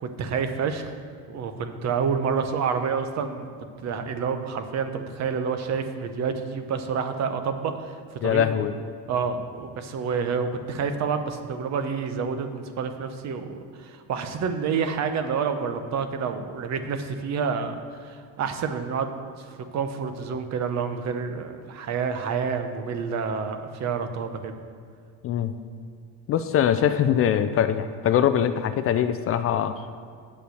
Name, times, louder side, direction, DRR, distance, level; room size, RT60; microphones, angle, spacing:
voice 1, 0.0-0.9 1.3-3.4 3.8-8.5 9.1-19.1 19.4-24.5, right 6 dB, 45° right, 8 dB, 0.9 m, -28 dB
voice 2, 8.2-8.7 25.2-25.5 26.3-29.9, left 9 dB, 40° left, 10 dB, 0.4 m, -22 dB
8.5 x 5.5 x 7.8 m, 2.2 s
cardioid pair, 135°, 36 cm